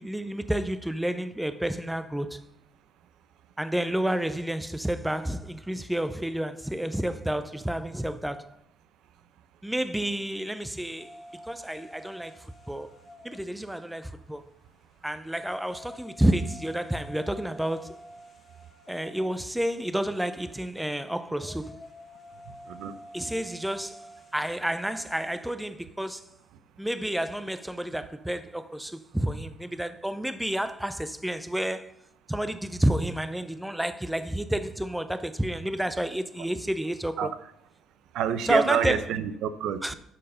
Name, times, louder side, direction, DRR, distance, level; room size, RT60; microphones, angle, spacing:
voice 1, 0.0-2.4 3.6-8.5 9.6-11.1 11.4-12.9 13.2-14.4 15.0-18.0 18.9-21.8 23.1-24.1 24.3-26.3 26.8-31.9 32.3-37.3 38.5-39.1 39.8-39.9, right 1 dB, 5° right, 0.5 m, -30 dB
sound 1, 11.0-25.4, left 1 dB, 35° left, 1.4 m, -50 dB
voice 2, 38.1-39.9, right 8 dB, 75° right, 0.7 m, -28 dB
11.5 x 4.5 x 5.6 m
cardioid pair, 110°, 0 cm